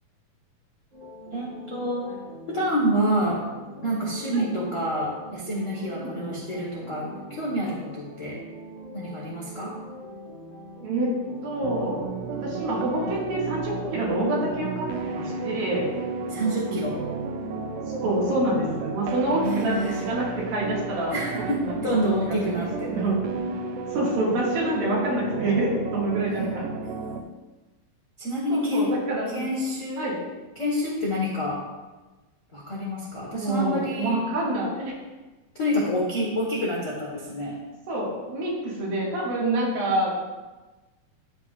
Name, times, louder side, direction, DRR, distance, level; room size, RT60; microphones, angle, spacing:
sound 1, 0.9-20.1, right 1 dB, 40° right, 1.8 m, -43 dB
voice 1, 1.3-2.0 2.5-3.4 3.8-8.4 8.9-9.7 16.3-16.9 19.4-20.0 21.1-23.2 26.3-27.2 28.2-28.9 29.3-30.0 30.5-31.6 32.5-34.2 35.5-37.6, equal, 75° left, -5 dB, 0.7 m, -28 dB
voice 2, 6.0-6.4 10.8-11.1 11.4-15.9 17.9-21.7 22.6-23.2 23.9-26.6 28.5-29.5 30.0-30.2 33.3-34.9 37.9-40.1, right 1 dB, 75° right, -5 dB, 4.0 m, -27 dB
sound 2, 11.6-27.2, right 5 dB, 90° right, 1.8 m, -33 dB
15.0 x 6.2 x 2.6 m, 1.2 s
omnidirectional pair, 4.3 m